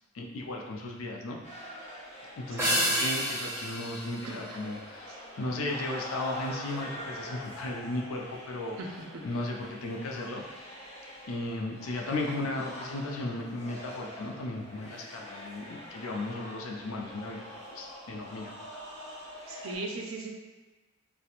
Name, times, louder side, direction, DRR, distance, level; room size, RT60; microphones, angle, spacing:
voice 1, 0.1-1.4 2.4-9.0 9.2-10.4 11.3-17.4 17.7-18.8, left 2 dB, 80° left, 0 dB, 0.4 m, -35 dB
sound 1, 1.4-19.8, equal, 35° left, 0.8 m, -45 dB
sound 2, 2.6-5.2, equal, 15° right, 0.5 m, -31 dB
voice 2, 2.6-3.1 4.2-4.4 19.5-20.3, right 3 dB, 80° right, 1 dB, 0.4 m, -38 dB
2.4 x 2.1 x 2.8 m, 1.2 s
head